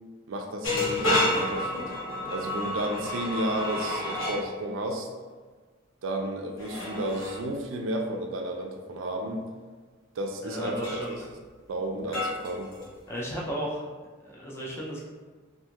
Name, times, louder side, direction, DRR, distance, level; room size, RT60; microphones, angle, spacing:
voice 1, 0.3-1.9 2.3-5.1 6.0-9.4 10.2-11.0 11.7-12.7, right 1 dB, 75° right, 3 dB, 0.4 m, -32 dB
sound 1, 0.6-4.4 6.6-7.4 10.8-11.1 12.1-13.1, left 1 dB, 80° left, 0.9 m, -30 dB
voice 2, 10.4-11.3 13.1-13.9 14.2-15.0, equal, 10° left, -5 dB, 0.4 m, -34 dB
2.6 x 2.3 x 2.8 m, 1.4 s
head